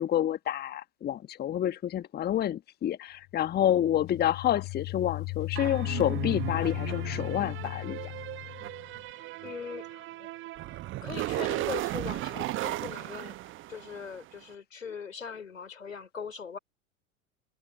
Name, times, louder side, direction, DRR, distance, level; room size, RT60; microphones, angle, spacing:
voice 1, 0.0-8.0, left 11 dB, 25° left, 1.4 m, -28 dB
sound 1, 3.3-9.0, left 27 dB, 45° left, 6.2 m, -36 dB
sound 2, 5.5-14.2, right 17 dB, 30° right, 1.0 m, -36 dB
voice 2, 9.1-10.3 10.6-16.6, left 6 dB, 75° left, 3.8 m, -41 dB
figure-of-eight pair, 80°, 39 cm